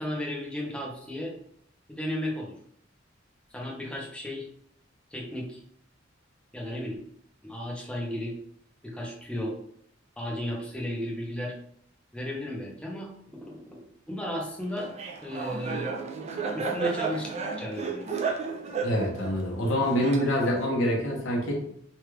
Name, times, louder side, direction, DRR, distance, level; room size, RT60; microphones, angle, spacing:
voice 1, 0.0-1.3 1.9-2.6 3.5-4.5 5.1-5.6 6.5-7.0 7.4-8.4 8.8-9.6 10.2-11.5 12.1-13.8 14.1-14.9 15.2-15.9 16.5-18.1, left 1 dB, 5° left, -2 dB, 0.7 m, -34 dB
Laughter, 14.8-20.6, right 5 dB, 35° right, 0.4 m, -33 dB
voice 2, 18.8-21.6, equal, 70° left, -2 dB, 1.0 m, -26 dB
3.2 x 2.4 x 3.2 m, 0.68 s
head